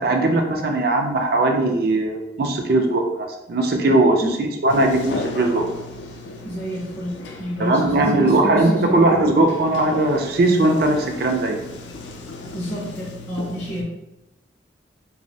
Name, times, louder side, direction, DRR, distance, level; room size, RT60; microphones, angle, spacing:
voice 1, 0.0-5.6 7.6-11.6, right 2 dB, 55° right, 3 dB, 0.3 m, -19 dB
Sliding door, 4.7-13.8, left 2 dB, 75° left, 0.3 m, -36 dB
voice 2, 6.4-9.0 12.5-13.9, equal, 15° left, -7 dB, 0.4 m, -29 dB
2.5 x 2.0 x 2.6 m, 0.93 s
head